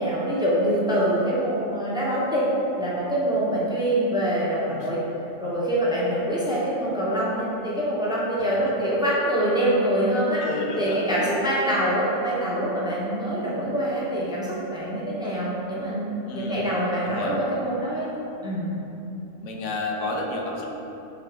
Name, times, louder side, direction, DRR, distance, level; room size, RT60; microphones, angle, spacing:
voice 1, 0.0-2.4 2.8-5.0 5.4-10.4 10.8-18.1 18.4-18.7, right 1 dB, 5° right, -7 dB, 0.9 m, -25 dB
voice 2, 10.4-11.0 16.3-16.6 17.0-17.4 19.4-20.7, left 2 dB, 85° left, 0 dB, 1.1 m, -30 dB
5.4 x 4.0 x 5.1 m, 3.0 s
omnidirectional pair, 1.4 m